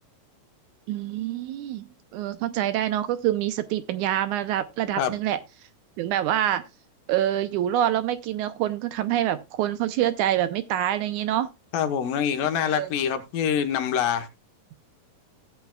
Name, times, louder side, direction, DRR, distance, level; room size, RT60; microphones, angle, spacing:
voice 1, 0.9-1.9 2.1-5.4 6.0-6.6 7.1-11.5 12.6-12.9, right 12 dB, 80° right, 1.9 m, -26 dB
voice 2, 11.7-14.3, left 8 dB, 80° left, 2.7 m, -25 dB
16.0 x 8.2 x 2.3 m
omnidirectional pair, 3.9 m